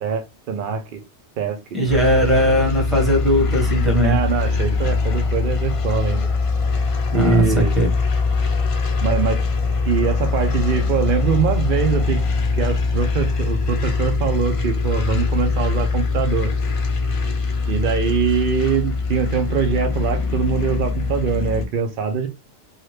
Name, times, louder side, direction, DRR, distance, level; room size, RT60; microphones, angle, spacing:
voice 1, 0.0-1.0 1.4-1.6 4.0-6.3 7.1-7.8 9.0-9.4 9.8-12.2 12.6-16.5 17.7-22.3, right 6 dB, 60° right, 0.6 m, -23 dB
voice 2, 1.7-4.2 7.1-7.9, equal, ahead, 1.0 m, -18 dB
sound 1, 1.9-21.7, left 4 dB, 55° left, 0.3 m, -22 dB
2.8 x 2.3 x 3.2 m
omnidirectional pair, 1.2 m